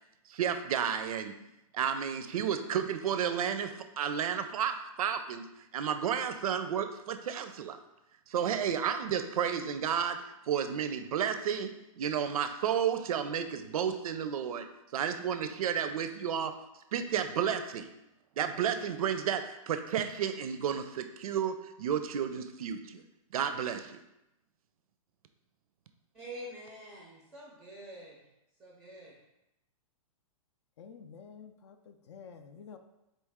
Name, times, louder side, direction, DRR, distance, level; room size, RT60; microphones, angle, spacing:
voice 1, 0.3-1.3 1.7-5.4 5.7-7.8 8.3-10.2 10.5-11.7 12.0-14.7 14.9-16.5 16.9-17.9 18.4-23.0 23.3-24.0, right 8 dB, 80° right, 9 dB, 0.5 m, -32 dB
voice 2, 26.1-28.2 28.6-29.2, right 1 dB, 5° right, -4 dB, 0.5 m, -46 dB
voice 3, 30.8-32.8, left 6 dB, 55° left, 6 dB, 0.4 m, -50 dB
4.1 x 3.1 x 3.5 m, 0.90 s
hypercardioid pair, 160°, 18 cm